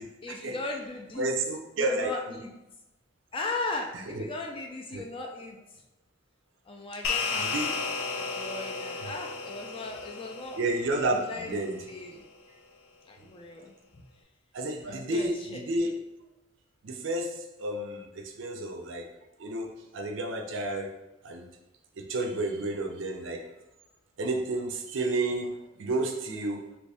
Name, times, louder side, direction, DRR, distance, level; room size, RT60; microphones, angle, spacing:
voice 1, 0.2-1.3 1.8-2.5 3.3-5.6 6.7-7.9 8.3-10.6 11.1-11.6 11.9-12.2 13.1-13.7 14.9-15.6, left 2 dB, 25° left, 1 dB, 0.4 m, -37 dB
voice 2, 1.2-2.1 4.1-4.2 4.9-5.0 7.4-7.7 10.6-11.8 14.5-16.0 16.8-19.1 19.4-20.9 21.2-21.4 22.0-23.4 24.2-26.6, right 2 dB, 65° right, 4 dB, 0.5 m, -31 dB
sound 1, 7.0-11.7, left 4 dB, 85° left, 0.5 m, -34 dB
3.0 x 2.7 x 3.3 m, 0.96 s
head